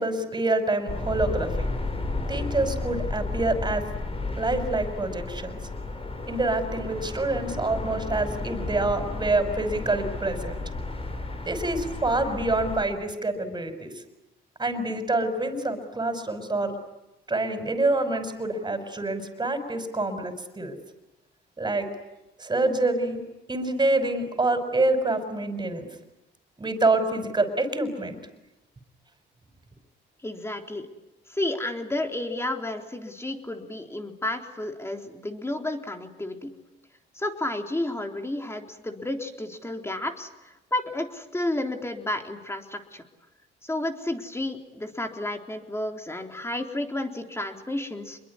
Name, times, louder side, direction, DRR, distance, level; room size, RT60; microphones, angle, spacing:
voice 1, 0.0-1.7 2.3-3.8 4.4-5.6 6.3-10.6 11.4-13.9 14.6-16.7 17.3-20.8 21.6-21.9 22.4-23.2 23.5-25.9 26.6-28.2, right 2 dB, 20° right, 7 dB, 5.9 m, -26 dB
sound 1, 0.9-12.8, left 2 dB, 30° left, 5.4 m, -32 dB
voice 2, 30.2-30.9 31.3-36.5 37.1-43.0 43.6-48.2, left 1 dB, 15° left, 3 dB, 3.8 m, -31 dB
27.0 x 22.5 x 9.8 m, 0.97 s
cardioid pair, 90°, 20 cm